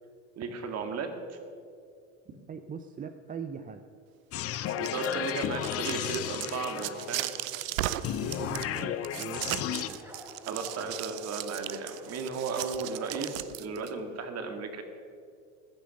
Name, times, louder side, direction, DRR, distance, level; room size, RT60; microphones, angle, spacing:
voice 1, 0.4-1.4 4.8-7.3 10.5-14.8, right 4 dB, 40° right, 6 dB, 2.1 m, -35 dB
voice 2, 2.5-3.8 8.0-10.0, right 6 dB, 20° right, 8 dB, 0.6 m, -41 dB
sound 1, 4.3-7.3 8.0-9.9, left 11 dB, 35° left, 0.7 m, -33 dB
sound 2, 4.5-13.9, right 14 dB, 90° right, 0.7 m, -37 dB
sound 3, 7.8-13.4, equal, 5° right, 2.1 m, -49 dB
15.0 x 10.0 x 6.5 m, 2.4 s
supercardioid pair, 105°, 39 cm